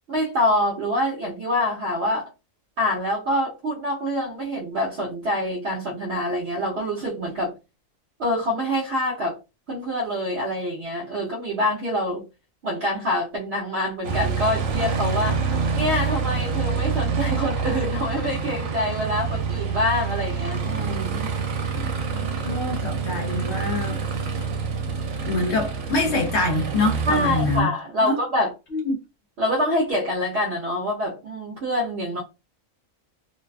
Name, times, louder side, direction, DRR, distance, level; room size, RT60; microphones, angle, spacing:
voice 1, 0.1-2.3 2.8-7.5 8.2-9.4 9.7-12.3 12.6-15.4 15.7-21.3 27.1-28.5 29.4-32.2, left 1 dB, 60° right, 0.9 m, -25 dB
Aircraft, 14.0-27.6, right 5 dB, 85° right, 1.0 m, -27 dB
voice 2, 22.4-24.0 25.3-27.7 28.0-28.2 28.7-29.0, left 2 dB, 60° left, 0.9 m, -25 dB
2.5 x 2.2 x 2.3 m
omnidirectional pair, 1.4 m